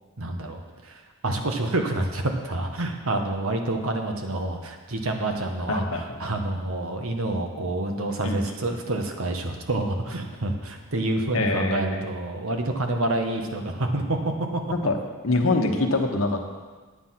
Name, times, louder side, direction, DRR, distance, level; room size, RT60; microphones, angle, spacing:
voice 1, 0.2-14.6, right 2 dB, 85° right, 4 dB, 1.3 m, -28 dB
voice 2, 5.7-6.2 8.2-8.5 11.3-12.0 14.7-15.0 15.2-16.5, left 2 dB, 70° left, 4 dB, 1.2 m, -24 dB
9.4 x 8.9 x 5.9 m, 1.4 s
head